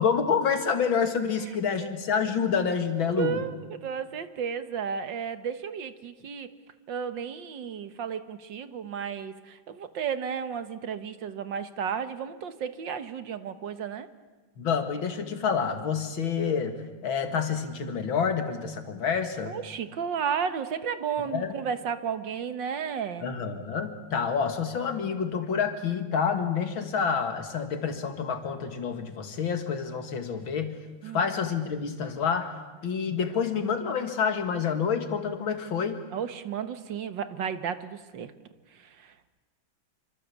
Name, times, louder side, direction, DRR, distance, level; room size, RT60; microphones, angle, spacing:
voice 1, 0.0-3.4 14.6-16.7 17.0-19.6 21.3-21.5 23.2-30.8 31.1-32.5 32.8-36.0, left 6 dB, 80° left, 7 dB, 2.8 m, -28 dB
voice 2, 3.2-6.5 6.9-14.1 19.5-23.3 31.0-31.2 36.1-38.3 38.8-39.1, right 7 dB, 70° right, 11 dB, 1.9 m, -33 dB
27.0 x 24.5 x 8.5 m, 1.3 s
omnidirectional pair, 2.1 m